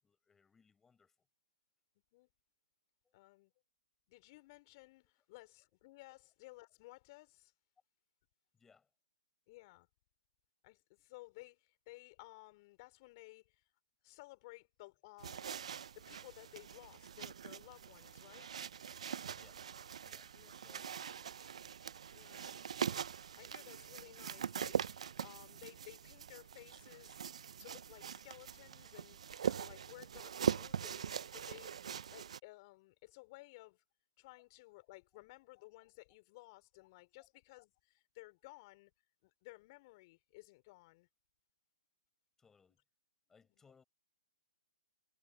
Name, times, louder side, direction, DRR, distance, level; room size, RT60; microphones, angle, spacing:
voice 1, 0.0-1.3 3.0-3.1 8.5-8.9 19.3-19.7 20.0-21.1 35.1-35.2 37.2-37.3 42.4-42.8 43.3-43.8, left 5 dB, 10° left, 6.8 m, -68 dB
voice 2, 3.1-3.5 4.1-7.5 9.5-9.9 10.6-13.6 14.0-18.5 20.3-20.8 22.1-23.0 23.3-24.8 25.2-27.2 27.6-29.2 29.4-31.1 31.3-31.7 32.1-33.8 34.2-38.9 39.2-41.1, left 22 dB, 40° left, 3.8 m, -57 dB
sound 1, 15.2-32.4, right 8 dB, 65° right, 0.3 m, -42 dB
hypercardioid pair, 135°, 4 cm